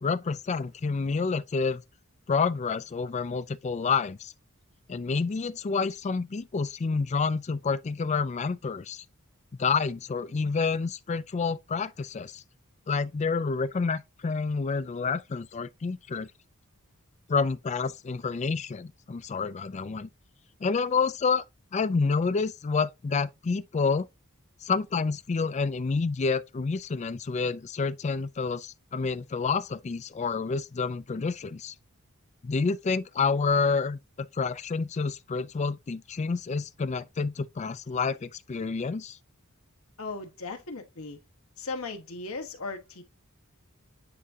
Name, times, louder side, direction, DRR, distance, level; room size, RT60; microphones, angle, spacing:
voice 1, 0.0-1.8 2.3-4.3 4.9-9.0 9.6-12.4 12.9-16.3 17.3-20.1 20.6-21.4 21.7-24.1 24.6-31.7 32.4-39.2, left 4 dB, 35° left, 0.4 m, -28 dB
voice 2, 40.0-41.2 41.6-43.0, left 3 dB, 80° left, 1.3 m, -37 dB
9.5 x 3.6 x 2.7 m
head